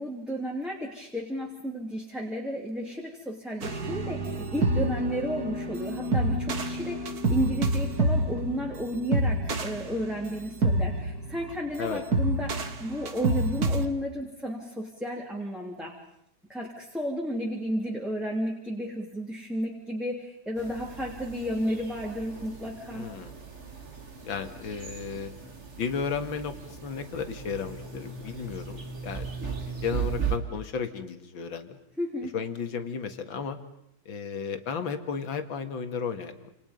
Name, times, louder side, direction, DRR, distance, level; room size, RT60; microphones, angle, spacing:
voice 1, 0.0-16.0 16.5-23.1 32.0-32.3, equal, ahead, -2 dB, 3.2 m, -33 dB
sound 1, 3.6-13.9, right 1 dB, 45° right, 2.1 m, -28 dB
sound 2, 20.6-30.4, right 6 dB, 30° right, 2.3 m, -37 dB
voice 2, 22.9-23.3 24.2-25.3 25.8-29.3 29.7-31.8 32.2-33.6 34.1-36.5, left 6 dB, 65° left, 8 dB, 2.6 m, -34 dB
29.0 x 28.5 x 5.4 m, 0.74 s
omnidirectional pair, 2.4 m